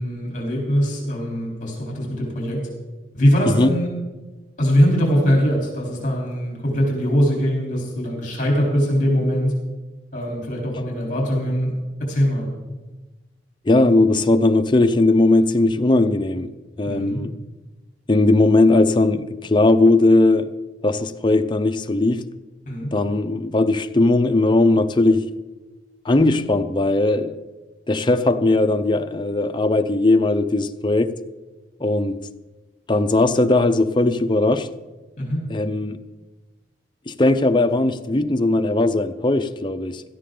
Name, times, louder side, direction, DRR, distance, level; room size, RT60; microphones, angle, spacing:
voice 1, 0.0-2.6 3.1-3.9 4.6-9.5 10.1-11.7 12.0-12.5 16.8-17.2 22.7-22.9 35.2-35.4, equal, 45° left, 3.8 m, -21 dB
voice 2, 13.7-16.5 16.8-17.3 18.1-20.5 20.8-22.2 22.9-25.3 26.0-27.4 27.9-31.1 31.8-32.2 32.9-34.7 35.5-36.0 37.1-40.0, left 2 dB, 25° left, 0.6 m, -18 dB
17.0 x 13.5 x 3.8 m
head